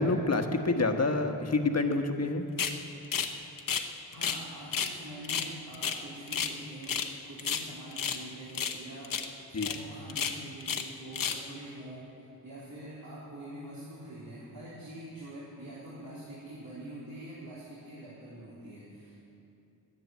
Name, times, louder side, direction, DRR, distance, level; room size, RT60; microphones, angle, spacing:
voice 1, 0.0-2.5 9.5-9.7, left 3 dB, 40° left, 5 dB, 1.3 m, -27 dB
sound 1, 2.6-2.8 3.1-3.3 3.6-4.4 4.7-4.9 5.2-6.6 6.8-7.1 7.4-8.2 8.5-8.8 9.0-9.3 9.6-9.8 10.1-10.9 11.1-11.5, left 7 dB, 60° left, 1.1 m, -32 dB
voice 2, 4.1-12.1 12.4-19.2, right 1 dB, 65° right, -9 dB, 3.8 m, -45 dB
12.0 x 10.5 x 9.3 m, 2.8 s
cardioid pair, 70°, 38 cm